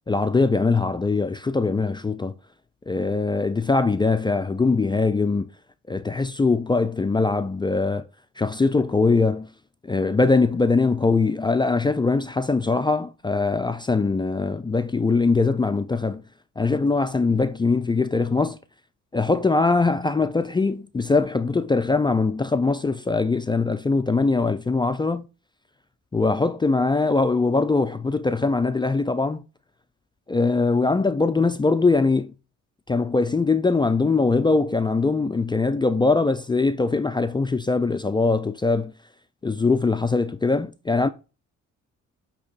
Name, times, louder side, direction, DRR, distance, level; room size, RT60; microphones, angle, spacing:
voice 1, 0.1-2.3 2.9-5.5 5.9-8.0 8.4-9.5 9.9-16.2 16.6-18.6 19.1-25.3 26.1-29.4 30.3-32.3 32.9-38.9 39.4-41.1, left 3 dB, 15° left, 0.3 m, -22 dB
8.5 x 2.9 x 4.0 m
cardioid pair, 90°, 30 cm